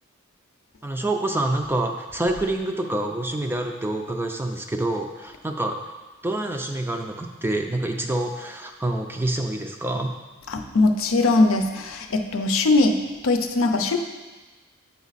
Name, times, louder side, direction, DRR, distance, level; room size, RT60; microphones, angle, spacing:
voice 1, 0.8-5.8 6.2-10.1, right 1 dB, 10° right, 4 dB, 0.4 m, -27 dB
voice 2, 10.5-14.0, left 2 dB, 75° left, 5 dB, 0.6 m, -21 dB
8.2 x 5.2 x 4.0 m, 1.2 s
head